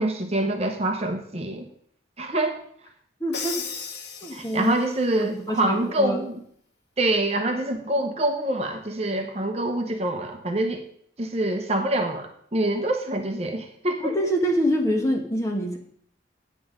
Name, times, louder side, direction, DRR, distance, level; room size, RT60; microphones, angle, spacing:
voice 1, 0.0-1.7 2.2-2.6 4.3-6.4 7.0-10.8 11.2-14.1, right 1 dB, 35° right, 4 dB, 0.9 m, -25 dB
voice 2, 3.2-3.6 4.2-4.8 5.2-6.2 14.0-15.8, equal, 15° left, 2 dB, 1.4 m, -25 dB
Crash cymbal, 3.3-5.0, left 5 dB, 60° left, 1.2 m, -35 dB
9.2 x 7.9 x 5.1 m, 0.64 s
head